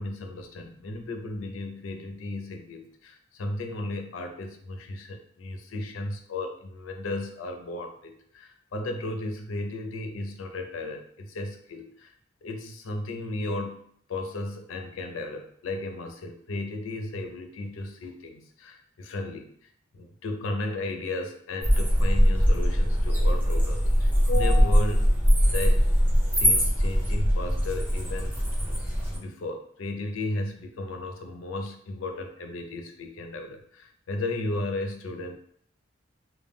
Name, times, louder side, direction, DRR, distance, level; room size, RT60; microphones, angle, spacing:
voice 1, 0.0-12.1 12.4-19.5 19.9-25.1 25.5-25.9 26.4-28.4 29.1-35.4, left 2 dB, 90° left, 5 dB, 0.4 m, -34 dB
sound 1, 21.6-29.2, equal, 10° right, 0.7 m, -22 dB
2.1 x 2.1 x 3.2 m, 0.64 s
head